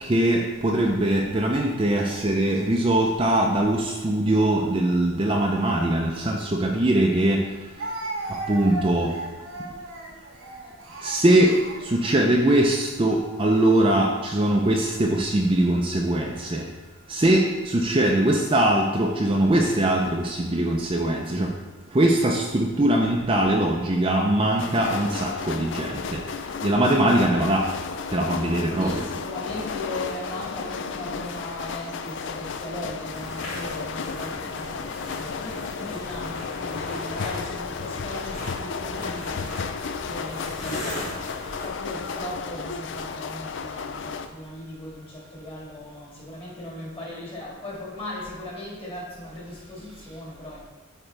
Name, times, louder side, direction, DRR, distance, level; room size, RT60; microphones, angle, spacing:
voice 1, 0.0-7.4 8.5-9.1 11.0-11.5 11.9-16.6 17.1-21.5 21.9-26.2 26.6-27.6 28.1-29.0, right 1 dB, 25° right, 0 dB, 0.5 m, -21 dB
Speech, 6.6-6.7 7.8-12.7 13.4-13.7 14.6-15.2, right 2 dB, 75° right, 1.1 m, -36 dB
sound 1, 24.6-44.3, left 5 dB, 60° left, 0.4 m, -33 dB
voice 2, 26.7-27.1 28.8-39.7 40.0-41.3 41.6-50.7, left 1 dB, 25° left, -5 dB, 2.0 m, -38 dB
sound 2, 33.1-41.7, left 1 dB, 75° left, 2.4 m, -40 dB
8.7 x 4.9 x 3.4 m, 1.3 s
head